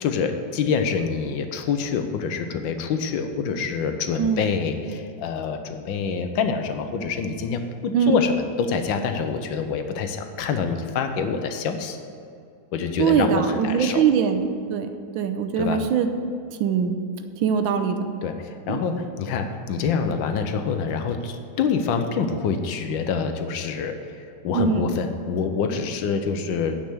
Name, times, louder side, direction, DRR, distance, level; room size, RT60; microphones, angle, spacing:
voice 1, 0.0-12.0 12.7-14.0 15.6-15.8 18.2-26.8, left 5 dB, 75° left, 7 dB, 1.5 m, -26 dB
voice 2, 13.0-14.4 14.7-14.9 15.1-16.1 16.6-17.0 17.4-18.1 18.7-18.8 24.5-24.9, right 7 dB, 90° right, 7 dB, 1.5 m, -22 dB
9.4 x 6.0 x 8.3 m, 2.4 s
omnidirectional pair, 2.1 m